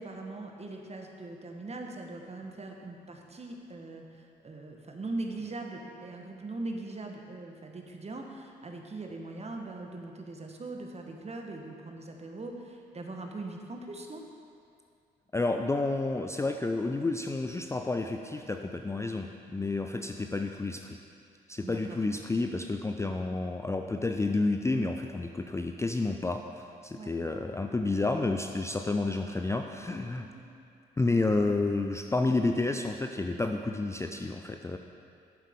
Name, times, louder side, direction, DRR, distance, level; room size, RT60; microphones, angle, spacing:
voice 1, 0.0-14.2 21.6-22.0 26.9-27.2 30.2-30.4, right 2 dB, 30° right, 2 dB, 1.2 m, -41 dB
voice 2, 15.3-21.0 21.5-30.3 31.0-34.8, left 3 dB, 15° left, 5 dB, 0.4 m, -30 dB
9.3 x 7.4 x 3.6 m, 2.4 s
hypercardioid pair, 45°, 21 cm